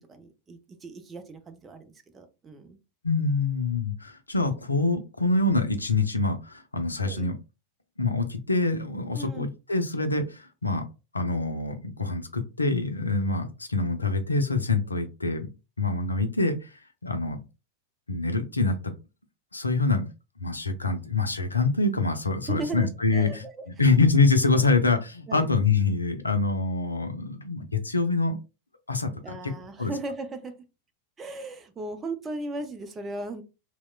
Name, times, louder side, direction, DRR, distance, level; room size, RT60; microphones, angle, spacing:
voice 1, 0.0-2.8 7.0-7.3 9.1-9.5 22.5-23.6 24.5-24.6 25.3-25.5 29.2-30.5 31.2-33.4, right 2 dB, 20° right, 6 dB, 0.4 m, -37 dB
voice 2, 3.0-7.4 8.0-10.9 11.1-15.5 15.8-17.4 18.1-18.9 19.5-20.1 20.4-23.4 23.8-28.4 28.9-29.4 29.8-29.9, left 3 dB, 80° left, 7 dB, 0.4 m, -25 dB
2.9 x 2.0 x 2.3 m, 0.29 s
figure-of-eight pair, 90°, 0 cm